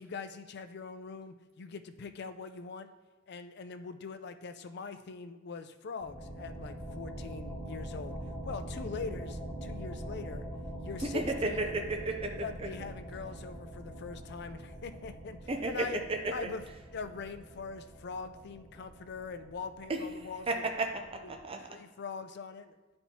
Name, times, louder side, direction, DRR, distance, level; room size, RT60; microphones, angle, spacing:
voice 1, 0.0-2.9 3.3-8.2 8.4-10.5 10.8-11.8 12.4-16.0 16.3-16.6 16.9-20.5 21.7-22.7, left 5 dB, 55° left, 9 dB, 0.4 m, -42 dB
sound 1, 6.0-21.4, equal, ahead, 2.2 m, -44 dB
voice 2, 11.0-12.7 15.5-16.5 19.9-20.0 20.5-21.8, right 2 dB, 30° right, 4 dB, 0.5 m, -33 dB
9.9 x 4.4 x 2.8 m, 1.2 s
head